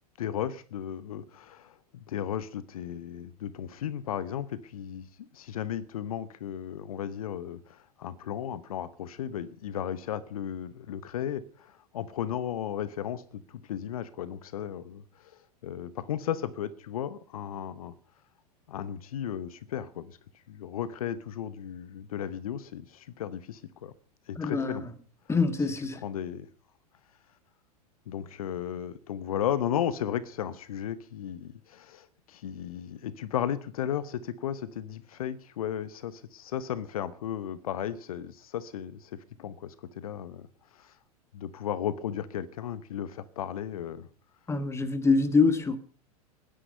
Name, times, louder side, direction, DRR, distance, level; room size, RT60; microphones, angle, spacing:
voice 1, 0.2-1.8 2.1-5.1 5.3-17.9 18.7-20.2 20.5-23.9 24.3-24.8 26.0-26.5 28.1-40.5 40.7-40.9 41.3-44.1, left 10 dB, 65° left, 0.9 m, -35 dB
voice 2, 24.4-24.8 25.3-26.0 44.5-45.8, left 4 dB, 15° left, 1.8 m, -25 dB
20.0 x 10.5 x 5.5 m
figure-of-eight pair, 95°, 20 cm